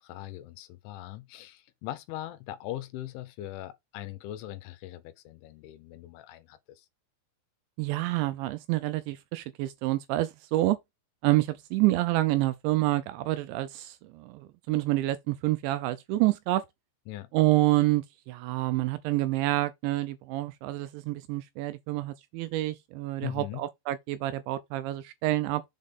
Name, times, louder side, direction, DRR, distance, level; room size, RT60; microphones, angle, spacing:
voice 1, 0.0-6.9 17.1-17.3 23.2-23.6, left 14 dB, 80° left, 3.3 m, -40 dB
voice 2, 7.8-10.8 11.2-16.6 17.3-25.6, right 17 dB, 80° right, 2.7 m, -28 dB
7.4 x 3.9 x 5.3 m
omnidirectional pair, 5.6 m